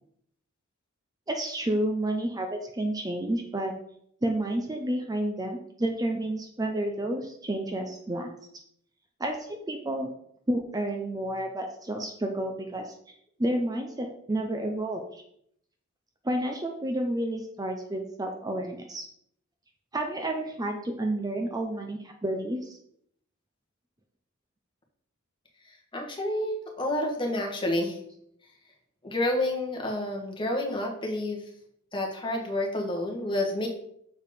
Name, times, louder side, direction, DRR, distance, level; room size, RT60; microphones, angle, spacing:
voice 1, 1.3-3.7 4.2-8.3 9.2-10.1 10.5-13.1 13.4-15.2 16.2-19.0 19.9-22.8, right 1 dB, 20° right, 3 dB, 0.7 m, -30 dB
voice 2, 25.9-28.0 29.0-31.4 31.9-33.7, left 1 dB, 25° left, 1 dB, 1.5 m, -29 dB
6.9 x 4.7 x 5.1 m, 0.70 s
head